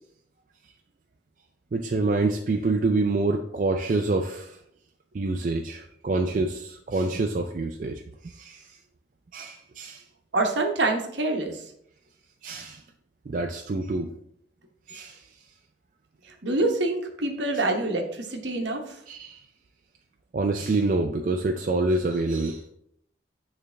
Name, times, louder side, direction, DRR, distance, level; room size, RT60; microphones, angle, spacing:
voice 1, 1.7-4.6 5.1-8.8 9.3-10.0 12.4-12.8 13.3-14.1 14.9-15.2 19.1-19.4 20.3-22.6, right 2 dB, 45° right, 4 dB, 0.4 m, -27 dB
voice 2, 10.3-11.7 16.4-19.0, right 2 dB, 70° right, 3 dB, 0.9 m, -26 dB
8.9 x 3.3 x 3.3 m, 0.70 s
head